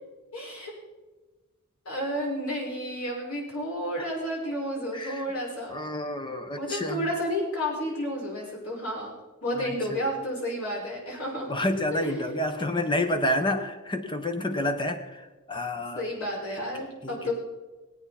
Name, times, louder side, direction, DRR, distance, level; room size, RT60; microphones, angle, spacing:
voice 1, 0.3-0.7 1.9-5.7 6.5-9.1 9.4-11.5 11.9-12.3 15.9-17.3, equal, 80° left, -3 dB, 5.7 m, -31 dB
voice 2, 4.9-5.2 5.7-7.1 9.6-10.0 11.5-16.1 17.0-17.3, left 1 dB, 20° left, 6 dB, 1.3 m, -29 dB
20.5 x 9.0 x 4.3 m, 1.2 s
head